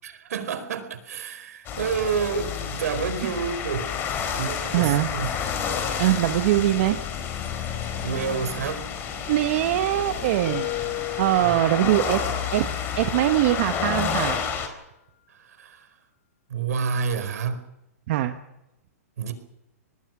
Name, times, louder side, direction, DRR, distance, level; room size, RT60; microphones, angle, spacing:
voice 1, 0.0-3.9 4.4-5.3 8.0-8.8 11.4-11.6 15.3-15.9 16.5-17.6 19.2-19.3, right 6 dB, 75° right, 10 dB, 4.6 m, -29 dB
sound 1, 1.6-14.7, left 7 dB, 25° left, 4.2 m, -30 dB
voice 2, 4.7-5.1 6.0-7.0 9.3-10.7 11.2-12.2 12.5-12.7 13.0-14.4 18.1-18.4, right 14 dB, 50° right, 7 dB, 1.4 m, -22 dB
sound 2, 10.5-13.3, left 16 dB, 60° left, 3.2 m, -35 dB
25.0 x 20.5 x 6.3 m, 0.90 s
hypercardioid pair, 145°, 9 cm